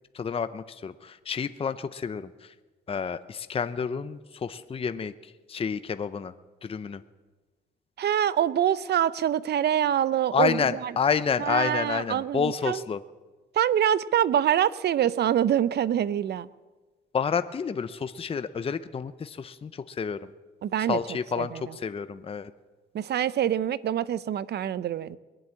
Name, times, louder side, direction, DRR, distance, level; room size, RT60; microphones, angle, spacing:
voice 1, 0.1-2.5 2.9-6.3 6.6-7.0 10.3-13.0 17.1-20.3 20.9-22.5, left 6 dB, 30° left, 12 dB, 0.6 m, -29 dB
voice 2, 8.0-10.9 11.4-12.8 13.6-16.5 20.6-21.0 21.4-21.6 22.9-25.2, right 10 dB, 55° right, 18 dB, 0.6 m, -25 dB
21.5 x 7.8 x 8.6 m, 1.3 s
cardioid pair, 90°, 20 cm